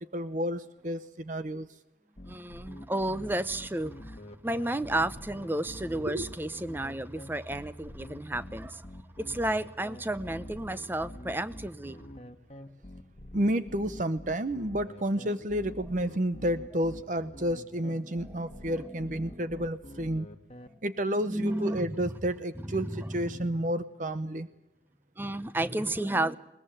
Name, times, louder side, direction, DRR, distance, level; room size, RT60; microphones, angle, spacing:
voice 1, 0.1-1.7 6.1-6.3 13.3-20.3 20.8-24.5, equal, 45° right, 12 dB, 0.8 m, -30 dB
sound 1, 2.2-20.7, left 1 dB, 35° left, 1.5 m, -46 dB
voice 2, 2.3-8.9 9.1-12.0 18.0-19.5 20.7-20.8 21.1-22.1 22.6-23.5 25.2-26.4, right 1 dB, 10° right, 14 dB, 0.7 m, -33 dB
21.5 x 20.5 x 8.9 m, 0.91 s
head